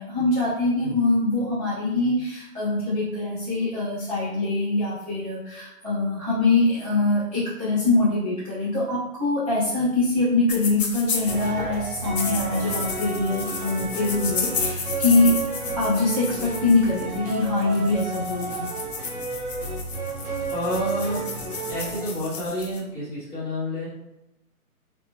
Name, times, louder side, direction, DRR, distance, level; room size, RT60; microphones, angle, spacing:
voice 1, 0.0-15.3 15.7-18.7, left 2 dB, 25° right, -12 dB, 0.4 m, -23 dB
sound 1, 10.5-11.5 11.9-22.8, left 5 dB, 60° left, 0.7 m, -33 dB
sound 2, 11.3-22.1, right 4 dB, 75° right, 1.2 m, -32 dB
voice 2, 20.5-21.4 21.7-23.9, equal, 5° right, -15 dB, 1.3 m, -29 dB
3.7 x 2.2 x 2.4 m, 0.90 s
hypercardioid pair, 160°, 45 cm